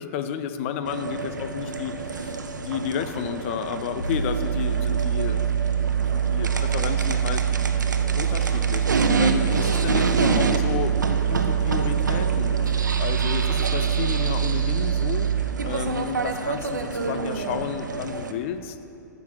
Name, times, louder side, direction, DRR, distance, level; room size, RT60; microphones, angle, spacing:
voice 1, 0.0-5.5 6.1-7.4 8.2-8.9 9.2-12.6 13.0-15.3 15.6-18.8, left 8 dB, 40° left, 9 dB, 0.5 m, -31 dB
sound 1, 0.8-18.3, right 4 dB, 75° right, 0.6 m, -29 dB
sound 2, 4.0-15.4, right 9 dB, 75° left, 1.7 m, -24 dB
8.5 x 6.0 x 5.9 m, 2.6 s
figure-of-eight pair, 110°, 10 cm